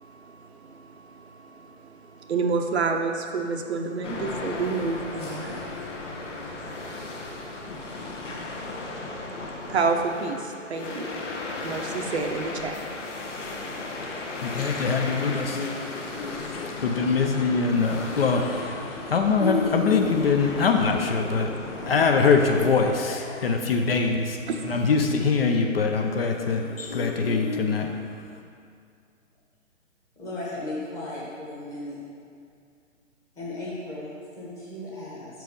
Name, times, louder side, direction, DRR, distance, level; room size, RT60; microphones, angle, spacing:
voice 1, 0.0-11.3 11.6-13.6 14.0-14.6 16.1-16.2 16.5-16.7 24.5-24.7, right 4 dB, 55° right, 4 dB, 0.7 m, -31 dB
sound 1, 4.0-23.0, left 3 dB, 65° left, 1.2 m, -36 dB
voice 2, 14.4-28.2, left 4 dB, 45° left, 3 dB, 0.6 m, -24 dB
voice 3, 30.2-32.0 33.4-35.4, left 2 dB, 10° left, -8 dB, 1.0 m, -36 dB
6.2 x 4.5 x 5.3 m, 2.3 s
hypercardioid pair, 145°, 40 cm